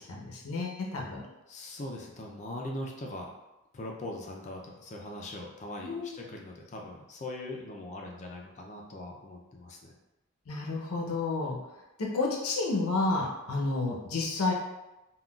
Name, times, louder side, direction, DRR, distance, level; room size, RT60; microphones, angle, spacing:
voice 1, 0.1-1.2 5.8-6.2 10.5-11.6 12.0-14.5, left 3 dB, 80° left, -1 dB, 0.7 m, -30 dB
voice 2, 1.5-3.3 3.7-9.9, left 1 dB, 35° left, 0 dB, 0.3 m, -41 dB
3.7 x 2.2 x 2.3 m, 0.99 s
head